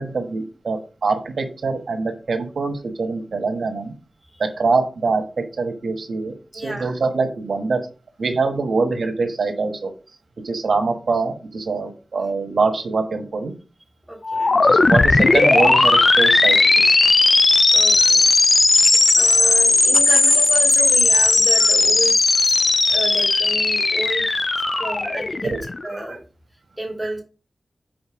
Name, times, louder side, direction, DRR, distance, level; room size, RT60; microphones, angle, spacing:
voice 1, 0.0-3.9 4.4-7.8 8.2-9.9 10.4-13.5 14.6-16.6 16.8-17.0 18.0-18.1 18.8-19.0 19.4-19.5 21.6-21.7 23.3-23.4 24.2-25.2 25.4-25.6 25.9-26.2 27.0-27.1, right 4 dB, 80° right, 4 dB, 1.4 m, -24 dB
voice 2, 6.5-6.9 14.1-14.6 17.7-18.2 19.1-22.5 22.9-24.3 24.8-25.5 25.8-26.2 26.8-27.2, right 1 dB, ahead, -1 dB, 3.0 m, -30 dB
sound 1, 14.2-25.9, left 3 dB, 45° left, 0.5 m, -16 dB
5.3 x 4.5 x 6.1 m, 0.34 s
wide cardioid pair, 100°, 0 cm